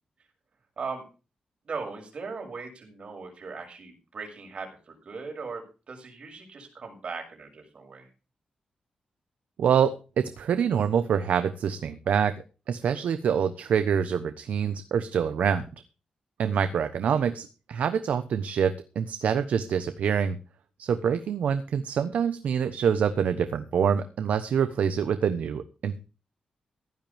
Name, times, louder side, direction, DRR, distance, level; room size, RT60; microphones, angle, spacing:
voice 1, 1.6-8.1, right 4 dB, 50° right, 3 dB, 6.5 m, -39 dB
voice 2, 9.6-9.9 10.4-12.3 12.7-15.7 16.4-20.4 20.8-26.0, right 7 dB, 80° right, 10 dB, 1.1 m, -26 dB
16.0 x 12.0 x 3.5 m, 0.34 s
wide cardioid pair, 130°, 2 cm